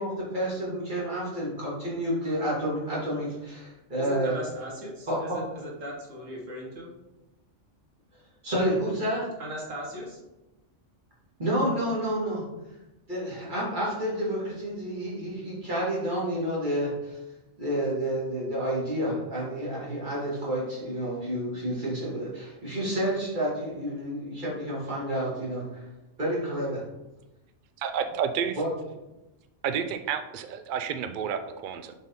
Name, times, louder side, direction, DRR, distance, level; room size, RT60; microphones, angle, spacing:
voice 1, 0.0-4.4 5.1-5.4 8.4-9.3 11.4-12.4 13.1-17.2 17.6-25.9 26.2-26.8 28.6-28.7, equal, 40° right, -6 dB, 2.4 m, -29 dB
voice 2, 4.0-6.9 9.4-10.2, equal, 90° right, -3 dB, 1.8 m, -38 dB
voice 3, 27.8-28.6 29.6-31.9, right 7 dB, 65° right, 7 dB, 0.5 m, -30 dB
7.1 x 4.2 x 3.7 m, 1.0 s
omnidirectional pair, 1.3 m